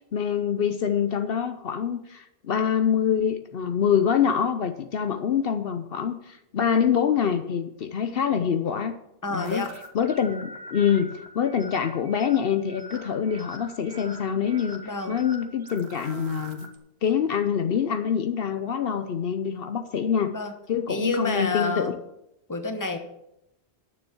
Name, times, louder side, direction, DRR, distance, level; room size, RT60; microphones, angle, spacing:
voice 1, 0.1-8.9 9.3-9.6 9.9-16.7 17.0-20.3 20.7-22.0, left 7 dB, 70° left, 8 dB, 0.9 m, -25 dB
voice 2, 9.2-9.7 14.8-15.2 20.3-20.5 20.9-22.0 22.5-23.0, left 3 dB, 20° left, 6 dB, 1.2 m, -29 dB
sound 1, 9.4-16.8, right 1 dB, 75° right, 1.6 m, -44 dB
9.7 x 7.1 x 7.0 m, 0.82 s
omnidirectional pair, 1.0 m